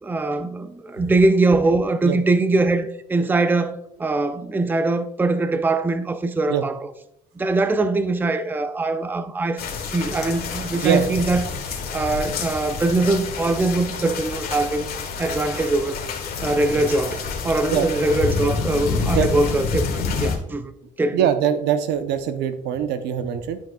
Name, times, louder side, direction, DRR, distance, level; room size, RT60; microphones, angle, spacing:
voice 1, 0.0-6.8 7.4-14.9 15.2-16.0 16.4-20.7 21.0-21.3, right 2 dB, 10° right, 0.5 m, -22 dB
sound 1, 9.6-20.4, left 4 dB, 65° left, 1.5 m, -28 dB
voice 2, 21.1-23.6, right 9 dB, 85° right, 0.7 m, -22 dB
11.5 x 6.0 x 2.3 m
cardioid pair, 110°, 17 cm